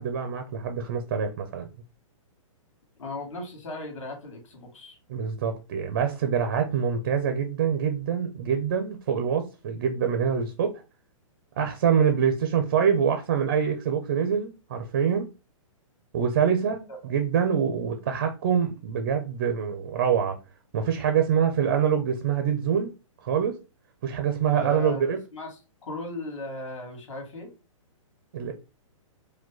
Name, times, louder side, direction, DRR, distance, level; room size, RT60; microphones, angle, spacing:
voice 1, 0.0-1.7 5.1-10.7 11.6-15.3 16.1-20.4 20.7-22.9 23.2-23.6 24.0-25.2 28.3-28.5, right 7 dB, 30° right, 0.4 m, -25 dB
voice 2, 3.0-5.0 24.5-25.5 25.8-27.5, left 2 dB, 65° left, 2.4 m, -37 dB
4.9 x 2.2 x 3.8 m
hypercardioid pair, 175°, 17 cm